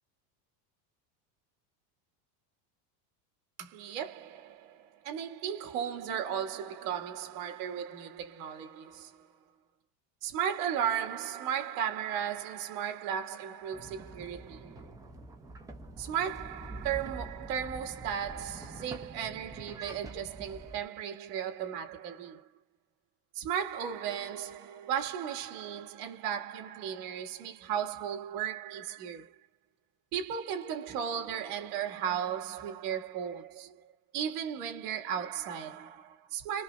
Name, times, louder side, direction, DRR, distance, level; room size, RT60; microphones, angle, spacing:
voice 1, 3.6-9.3 10.2-14.9 16.0-22.5 23.3-29.3 30.1-36.6, right 9 dB, 70° right, 1.9 m, -35 dB
sound 1, 13.7-20.8, right 2 dB, 10° right, 0.3 m, -46 dB
5.4 x 2.1 x 2.3 m
cardioid pair, 160°, 47 cm